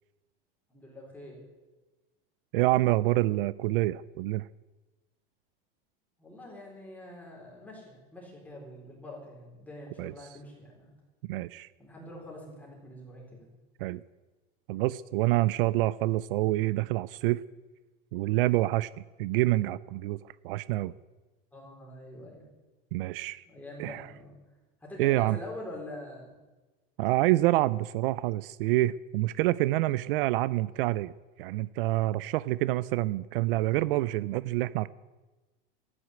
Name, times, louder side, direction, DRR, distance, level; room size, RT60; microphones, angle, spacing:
voice 1, 0.7-1.4 6.2-10.9 11.8-13.5 15.1-15.2 21.5-22.5 23.5-24.3 24.8-26.4, left 1 dB, 5° left, -2 dB, 4.1 m, -45 dB
voice 2, 2.5-4.5 10.0-10.1 11.2-11.7 13.8-14.0 14.7-17.4 18.1-18.9 19.2-20.2 20.4-20.9 22.9-23.4 23.8-24.0 25.0-25.4 27.0-31.1 31.4-34.9, right 17 dB, 65° right, 18 dB, 0.5 m, -27 dB
13.0 x 9.8 x 9.1 m, 1.2 s
supercardioid pair, 160°, 29 cm